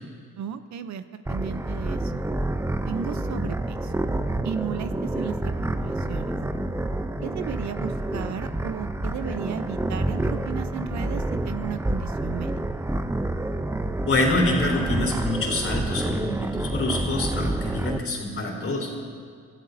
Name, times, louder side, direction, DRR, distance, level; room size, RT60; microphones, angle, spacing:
voice 1, 0.4-2.1 2.9-3.9 4.4-6.4 7.2-12.6, right 8 dB, 65° right, 10 dB, 0.8 m, -34 dB
sound 1, 1.3-18.0, right 1 dB, 10° right, 0.6 m, -28 dB
voice 2, 14.1-18.9, left 2 dB, 45° left, 0 dB, 3.7 m, -26 dB
27.0 x 13.5 x 2.8 m, 2.1 s
cardioid pair, 90°, 30 cm